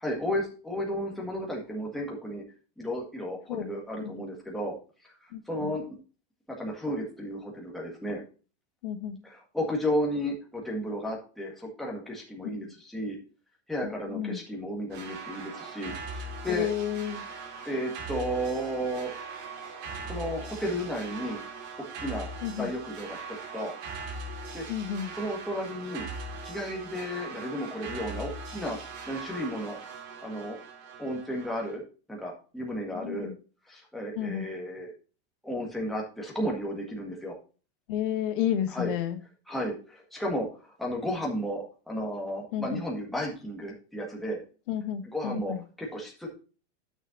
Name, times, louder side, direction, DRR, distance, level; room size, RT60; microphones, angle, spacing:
voice 1, 0.0-2.4 2.8-4.7 5.0-5.8 6.5-8.2 9.2-13.2 13.7-16.7 17.6-19.1 20.1-21.4 22.0-22.3 22.6-23.2 23.5-23.7 24.5-24.6 25.1-26.1 26.4-29.8 30.2-30.6 31.0-31.8 32.1-33.3 33.7-34.9 35.4-37.4 38.7-38.9 39.5-44.4 45.1-46.3, equal, ahead, 1.7 m, -33 dB
voice 2, 5.3-5.7 8.8-9.2 12.6-12.7 13.8-14.4 16.5-17.2 22.4-22.7 24.7-25.1 32.9-33.3 34.2-34.5 37.9-39.2 42.5-42.8 44.7-45.6, left 10 dB, 55° left, 1.1 m, -31 dB
sound 1, 14.9-31.8, right 3 dB, 40° right, 2.2 m, -40 dB
11.0 x 6.5 x 2.7 m
supercardioid pair, 170°, 33 cm